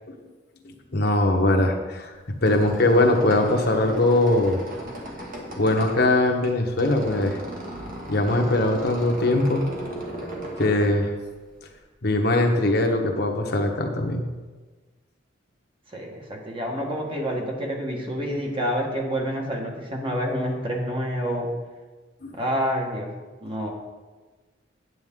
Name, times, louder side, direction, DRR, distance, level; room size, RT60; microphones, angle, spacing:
voice 1, 0.9-2.1 2.4-4.6 5.6-7.4 8.1-9.6 10.6-11.1 12.0-14.2 22.2-22.4, left 1 dB, 60° left, 3 dB, 1.1 m, -21 dB
Squeak, 2.1-11.8, right 1 dB, 50° right, 1.7 m, -37 dB
voice 2, 15.9-21.5 22.3-23.1 23.4-23.7, equal, 30° right, 0 dB, 1.4 m, -28 dB
9.3 x 8.8 x 3.7 m, 1.3 s
head